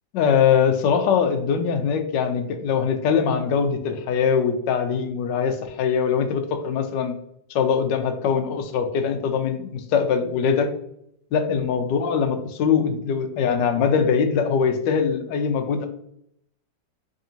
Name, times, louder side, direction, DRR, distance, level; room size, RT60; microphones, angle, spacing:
voice 1, 0.1-7.1 7.5-10.7 11.3-15.9, left 6 dB, 75° left, 6 dB, 1.2 m, -22 dB
3.6 x 3.6 x 2.8 m, 0.71 s
omnidirectional pair, 2.0 m